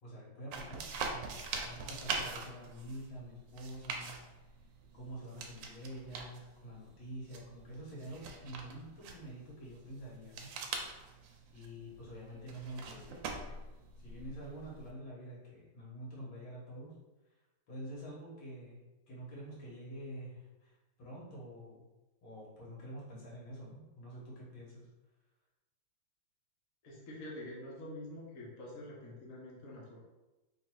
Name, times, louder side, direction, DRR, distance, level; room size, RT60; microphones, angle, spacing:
voice 1, 0.0-1.3 1.6-4.1 4.5-4.6 4.9-10.6 11.5-13.6 14.0-17.0 17.3-17.4 17.7-18.8 19.1-21.8 22.2-24.9, right 1 dB, 80° left, -6 dB, 2.2 m, -47 dB
sound 1, 0.5-14.9, right 4 dB, 75° right, 1.2 m, -44 dB
voice 2, 26.8-30.0, left 1 dB, 50° left, -4 dB, 1.2 m, -46 dB
3.9 x 2.6 x 4.5 m, 1.1 s
omnidirectional pair, 2.2 m